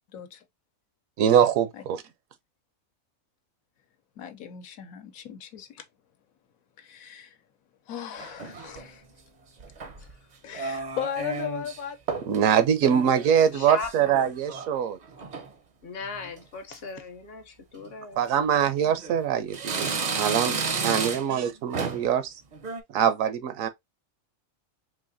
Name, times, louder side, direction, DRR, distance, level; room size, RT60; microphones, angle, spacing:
voice 1, 0.1-0.4 1.7-1.8 4.2-5.9 6.8-7.4 7.9-9.0 10.4-12.0, left 9 dB, 85° left, 1.2 m, -36 dB
voice 2, 1.2-2.0 12.3-15.0 18.2-22.3 22.9-23.7, right 8 dB, 75° right, 1.0 m, -23 dB
sound 1, 8.2-8.9 9.6-10.1 10.5-11.8 12.1-12.4 12.7-14.7 15.0-15.5 16.0-16.4 16.7-16.8 17.7-17.9 18.5-19.2 19.5-21.4 21.7-22.1 22.5-22.8, right 5 dB, 50° right, 0.5 m, -33 dB
voice 3, 13.5-14.3 15.8-18.3 20.8-21.4 21.6-21.8, left 4 dB, 55° left, 0.8 m, -39 dB
3.9 x 2.8 x 2.6 m
omnidirectional pair, 1.4 m